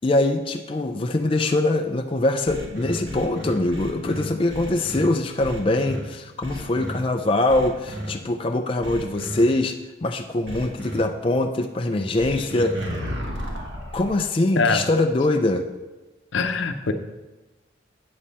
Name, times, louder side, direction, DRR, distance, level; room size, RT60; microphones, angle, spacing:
voice 1, 0.0-9.7 10.0-12.8 13.9-15.6, left 2 dB, 25° left, 5 dB, 0.4 m, -23 dB
sound 1, 2.5-5.1 5.4-6.0 6.4-7.0 7.5-8.1 8.8-9.4 10.5-11.0 12.2-14.1, equal, 65° right, 1.7 m, -32 dB
voice 2, 16.3-16.9, left 4 dB, 75° left, 7 dB, 0.7 m, -22 dB
8.7 x 7.2 x 4.2 m, 1.1 s
head